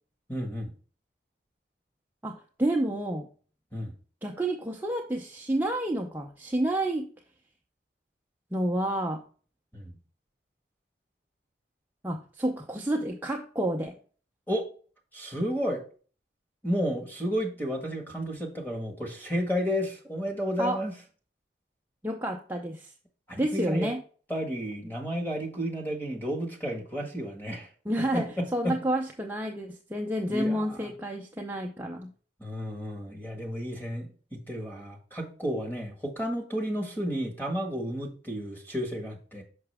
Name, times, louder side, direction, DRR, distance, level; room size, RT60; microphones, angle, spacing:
voice 1, 0.3-0.7 3.7-3.9 9.7-10.0 14.5-14.6 15.1-15.8 16.6-20.9 23.3-23.9 24.3-27.7 28.1-28.8 30.3-30.8 32.4-39.4, equal, 10° left, 2 dB, 1.5 m, -32 dB
voice 2, 2.2-3.3 4.2-7.1 8.5-9.2 12.0-14.0 20.6-20.8 22.0-22.9 23.4-24.0 27.9-32.1, right 1 dB, 10° right, 1 dB, 0.5 m, -29 dB
5.9 x 5.8 x 3.3 m, 0.40 s
head